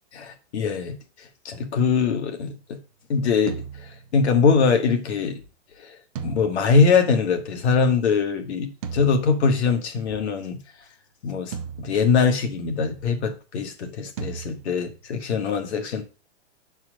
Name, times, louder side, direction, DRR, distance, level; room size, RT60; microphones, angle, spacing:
voice 1, 0.1-1.0 1.4-2.8 3.1-5.4 6.2-10.6 11.2-16.0, left 5 dB, 65° left, 1.6 m, -22 dB
sound 1, 3.5-4.7 6.1-7.7 8.8-10.0 11.5-12.7 14.2-15.3, right 7 dB, 30° right, 0.6 m, -38 dB
6.3 x 4.4 x 6.3 m
supercardioid pair, 175°, 36 cm